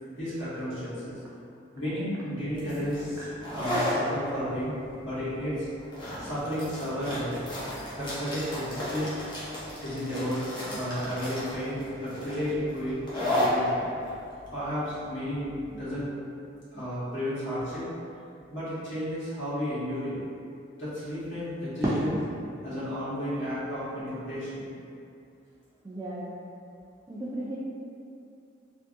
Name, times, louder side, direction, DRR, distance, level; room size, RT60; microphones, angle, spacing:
voice 1, 0.2-1.2 1.7-4.7 5.0-5.7 6.2-7.3 7.9-9.1 9.8-13.0 13.3-13.8 14.5-16.1 16.7-17.9 18.5-20.2 20.8-22.1 22.6-24.7, equal, 85° left, -12 dB, 1.4 m, -32 dB
sound 1, 2.5-15.9, left 1 dB, 25° left, 0.7 m, -34 dB
voice 2, 25.8-26.2 27.1-27.6, right 1 dB, 15° right, -7 dB, 0.3 m, -31 dB
3.4 x 2.6 x 2.5 m, 2.6 s
head